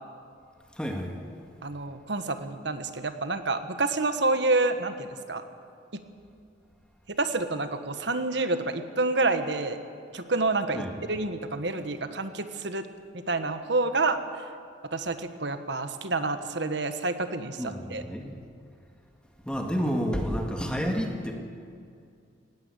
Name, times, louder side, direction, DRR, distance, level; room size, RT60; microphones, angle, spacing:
voice 1, 0.7-1.2 10.7-11.0 17.6-18.3 19.4-21.3, equal, 5° left, 2 dB, 1.9 m, -30 dB
voice 2, 1.6-5.4 5.9-6.0 7.1-9.8 10.1-12.9 13.1-14.4 14.9-17.6 17.9-18.0, right 3 dB, 65° right, 9 dB, 1.3 m, -28 dB
18.5 x 16.5 x 8.4 m, 2.4 s
head